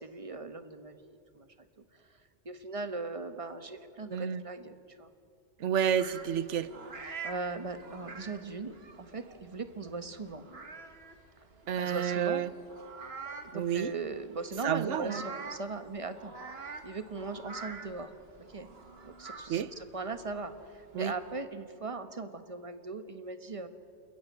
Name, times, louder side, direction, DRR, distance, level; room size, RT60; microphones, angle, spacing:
voice 1, 0.0-1.5 2.4-5.1 7.2-10.4 11.8-12.5 13.4-16.4 16.8-18.1 18.5-18.7 19.0-23.7, right 3 dB, 30° right, 9 dB, 1.2 m, -39 dB
voice 2, 4.1-4.4 5.6-6.7 11.7-12.5 13.5-13.9 14.6-15.2 19.5-19.7 20.9-21.1, right 9 dB, 85° right, 15 dB, 1.1 m, -30 dB
sound 1, 5.9-21.4, right 4 dB, 60° right, 1.8 m, -47 dB
28.5 x 14.0 x 9.5 m, 2.5 s
omnidirectional pair, 1.2 m